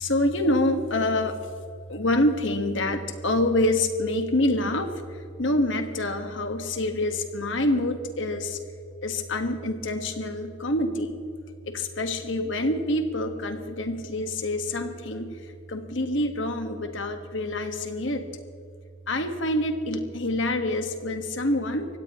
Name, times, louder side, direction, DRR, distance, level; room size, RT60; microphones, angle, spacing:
voice 1, 0.0-1.4 1.9-4.9 5.4-8.6 9.0-11.2 11.7-15.3 15.7-18.2 19.1-21.9, left 1 dB, 75° left, 6 dB, 1.6 m, -26 dB
24.0 x 17.0 x 3.1 m, 2.4 s
head